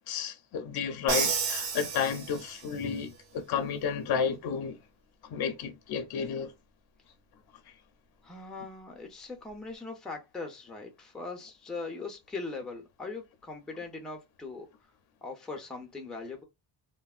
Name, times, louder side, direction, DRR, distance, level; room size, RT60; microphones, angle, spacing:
voice 1, 0.1-4.8 5.2-6.5, left 6 dB, 60° left, 0.5 m, -32 dB
Crash cymbal, 1.1-2.8, right 6 dB, 80° right, 1.0 m, -31 dB
voice 2, 8.2-14.7 15.2-16.4, left 3 dB, ahead, 0.5 m, -40 dB
3.3 x 2.1 x 2.3 m
wide cardioid pair, 170°, 44 cm